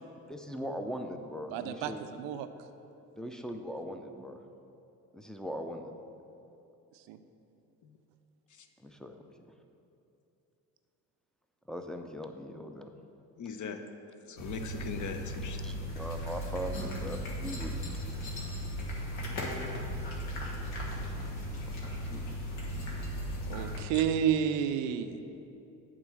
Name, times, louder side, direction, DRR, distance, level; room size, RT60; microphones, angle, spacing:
voice 1, 0.3-2.1 3.2-4.4 5.1-5.9 8.8-9.5 11.7-12.9 15.6-17.8 21.4-22.3, equal, ahead, 4 dB, 0.6 m, -40 dB
voice 2, 1.5-1.9 2.2-2.5 7.1-7.2 23.5-25.2, right 8 dB, 70° right, 10 dB, 0.6 m, -30 dB
voice 3, 13.4-13.8 14.3-15.6 23.9-24.0, left 6 dB, 40° left, 7 dB, 0.8 m, -39 dB
sound 1, 14.4-23.8, equal, 70° left, 1.4 m, -37 dB
8.7 x 3.7 x 6.3 m, 2.9 s
hypercardioid pair, 45°, 46 cm